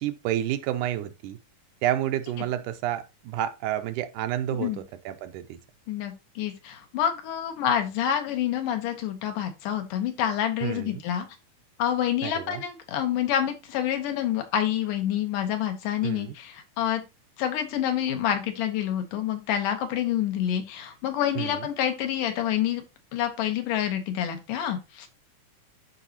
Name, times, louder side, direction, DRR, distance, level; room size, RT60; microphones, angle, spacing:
voice 1, 0.0-1.4 1.8-5.6 10.6-11.0 12.2-12.6 16.0-16.4 21.4-21.7, right 12 dB, 85° right, 2.1 m, -30 dB
voice 2, 5.9-11.3 11.8-17.0 17.4-22.8 23.1-25.1, left 10 dB, 80° left, 2.7 m, -27 dB
12.0 x 4.0 x 2.9 m
omnidirectional pair, 3.7 m